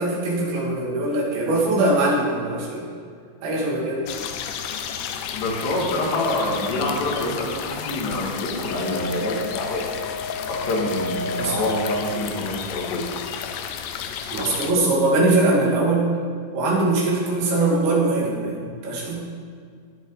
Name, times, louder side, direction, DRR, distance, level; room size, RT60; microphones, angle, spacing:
voice 1, 0.0-2.9 3.4-4.1 11.4-11.5 14.3-16.1 16.5-19.2, right 2 dB, 85° right, -4 dB, 4.9 m, -21 dB
sound 1, 4.1-14.7, left 8 dB, 90° left, 3.0 m, -32 dB
voice 2, 5.3-9.8 10.5-13.0, left 1 dB, 75° left, -4 dB, 4.7 m, -26 dB
Wind instrument woodwind instrument, 8.6-12.1, left 1 dB, 65° right, 5.4 m, -32 dB
20.0 x 8.2 x 4.1 m, 2.2 s
omnidirectional pair, 5.0 m